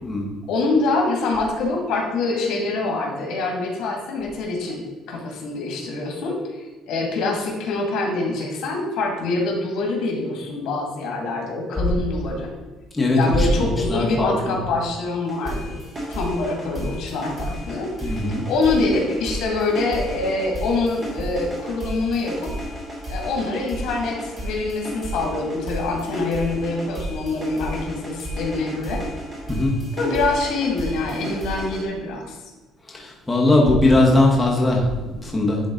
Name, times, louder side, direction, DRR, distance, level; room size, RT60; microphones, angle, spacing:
voice 1, 0.5-12.5 13.1-15.8 16.1-22.5 23.1-29.0 30.0-32.4, left 3 dB, 75° left, 0 dB, 2.1 m, -25 dB
voice 2, 12.9-14.6 18.0-18.4 29.5-29.7 32.9-35.6, left 2 dB, 10° left, -3 dB, 1.2 m, -19 dB
sound 1, 15.3-31.8, equal, 25° right, 2.5 m, -33 dB
11.0 x 3.8 x 3.8 m, 1.3 s
cardioid pair, 160°, 0 cm